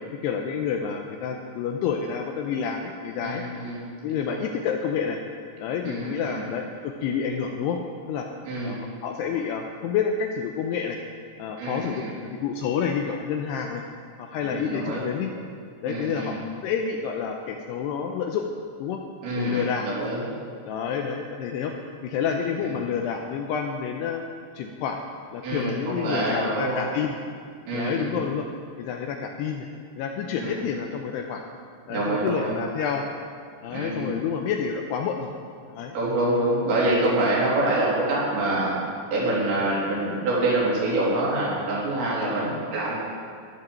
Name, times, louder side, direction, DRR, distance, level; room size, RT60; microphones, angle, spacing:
voice 1, 0.2-3.4 4.0-5.2 5.6-7.8 8.1-8.3 8.6-11.0 11.4-13.8 14.2-15.3 15.8-16.4 16.6-18.4 18.8-19.0 19.4-19.9 20.7-21.7 22.0-24.3 24.6-25.0 25.3-27.2 27.7-28.5 28.8-29.7 30.0-31.4 31.9-33.1 33.6-35.3 35.7-36.0 42.5-42.6, left 7 dB, 90° left, 3 dB, 2.4 m, -29 dB
voice 2, 3.2-3.8 4.1-4.4 5.8-6.5 8.4-8.8 11.6-12.1 14.4-15.0 15.9-16.4 19.2-20.2 22.6-22.8 25.4-26.8 27.7-28.3 30.4-30.6 31.9-32.5 33.7-34.2 35.9-38.8 39.1-42.9, right 2 dB, 70° right, -6 dB, 5.6 m, -26 dB
12.5 x 11.0 x 7.0 m, 2.2 s
omnidirectional pair, 5.5 m